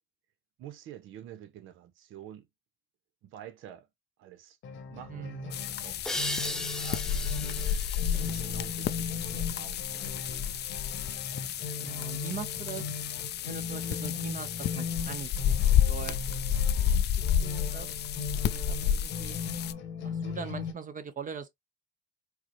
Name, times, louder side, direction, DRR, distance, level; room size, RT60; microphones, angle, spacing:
voice 1, 0.6-2.5 3.2-3.9 4.2-4.6 4.9-7.8 8.1-10.6, right 10 dB, 90° right, 0.7 m, -49 dB
sound 1, 4.6-20.7, left 5 dB, 75° left, 1.1 m, -38 dB
voice 2, 5.1-5.5 8.1-8.5 11.8-12.9 13.4-17.0 17.4-19.4 19.9-21.5, right 6 dB, 40° right, 0.7 m, -42 dB
sound 2, 5.5-19.7, left 9 dB, 55° left, 0.4 m, -30 dB
sound 3, 6.0-9.4, left 1 dB, 5° left, 0.5 m, -38 dB
4.6 x 2.0 x 2.9 m
cardioid pair, 90°, 20 cm